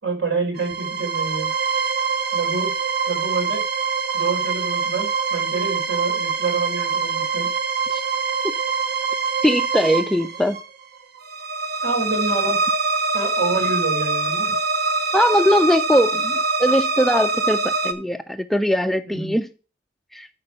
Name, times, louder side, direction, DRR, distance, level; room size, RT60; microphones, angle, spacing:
voice 1, 0.0-1.5 2.3-2.7 3.1-3.6 4.1-7.5 11.8-12.6 13.1-14.5 19.0-19.4, right 3 dB, 75° right, 0 dB, 4.4 m, -27 dB
sound 1, 0.6-17.9, right 4 dB, 55° right, 1.0 m, -24 dB
voice 2, 9.4-10.6 15.1-19.5 20.1-20.3, equal, ahead, 10 dB, 0.4 m, -20 dB
9.7 x 4.4 x 6.6 m, 0.35 s
head